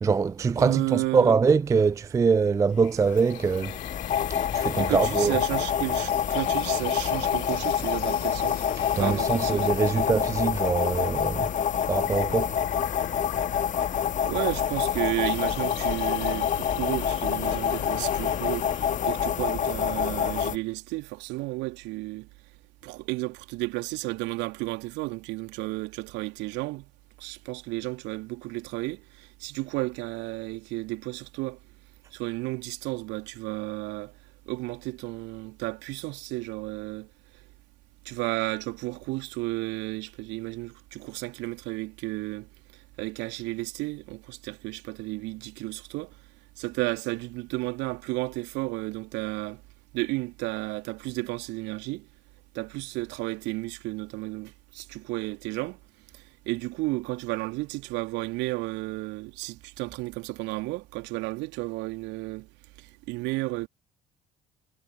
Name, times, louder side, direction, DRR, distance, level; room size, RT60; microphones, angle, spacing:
voice 1, 0.0-3.8 4.3-5.4 8.9-11.5 11.9-12.6, right 5 dB, 15° right, 0.3 m, -24 dB
voice 2, 0.6-1.3 4.8-8.7 9.0-9.7 9.9-10.1 14.2-22.3 22.8-26.9 27.2-31.6 32.1-34.1 34.5-37.1 38.0-42.5 43.0-46.1 46.6-49.6 49.9-52.1 52.5-55.8 56.1-62.5 62.8-63.7, right 23 dB, 60° right, 2.6 m, -33 dB
sound 1, 2.6-19.6, left 40 dB or more, 65° left, 2.7 m, -43 dB
sound 2, 3.1-20.6, left 8 dB, 35° left, 1.5 m, -27 dB
figure-of-eight pair, 55°, 21 cm